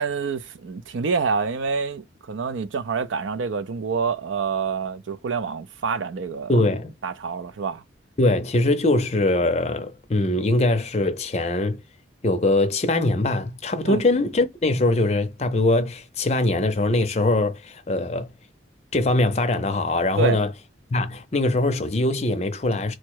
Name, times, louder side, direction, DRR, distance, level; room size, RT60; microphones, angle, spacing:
voice 1, 0.0-6.6 7.0-7.8 13.8-14.0 20.2-20.4, right 5 dB, 90° right, 0.5 m, -27 dB
voice 2, 6.5-6.9 8.2-11.8 12.2-18.3 18.9-20.5 20.9-22.9, left 2 dB, 35° left, 0.5 m, -22 dB
4.4 x 2.1 x 4.6 m
head